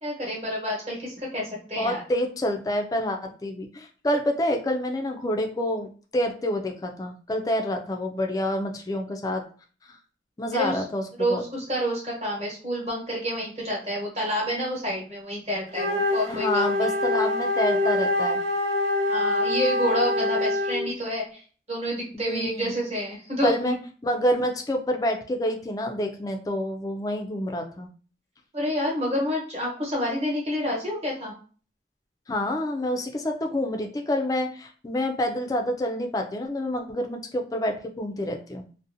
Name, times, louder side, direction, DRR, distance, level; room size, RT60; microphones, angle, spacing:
voice 1, 0.0-2.0 10.5-10.8 11.2-16.8 19.0-21.4 21.7-23.8 28.5-31.3, equal, 35° right, -3 dB, 1.0 m, -28 dB
voice 2, 1.8-9.4 9.9-10.0 10.4-11.4 16.3-18.4 22.1-22.8 23.4-23.8 24.0-27.9 32.3-38.7, left 1 dB, 20° left, 4 dB, 0.3 m, -28 dB
Wind instrument woodwind instrument, 15.7-20.9, left 2 dB, 75° right, 1.1 m, -25 dB
2.7 x 2.0 x 2.6 m, 0.40 s
head